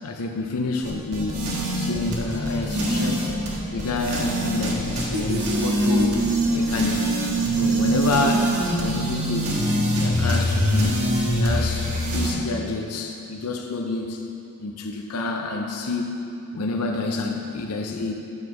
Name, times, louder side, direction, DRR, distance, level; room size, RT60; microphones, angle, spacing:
voice 1, 0.0-1.4 1.8-3.4 3.7-7.1 7.5-9.6 9.9-14.2 14.6-16.1 16.5-18.1, left 3 dB, 80° left, 3 dB, 0.6 m, -28 dB
sound 1, 0.8-12.3, right 1 dB, 80° right, 1.4 m, -23 dB
8.4 x 4.7 x 5.5 m, 2.8 s
head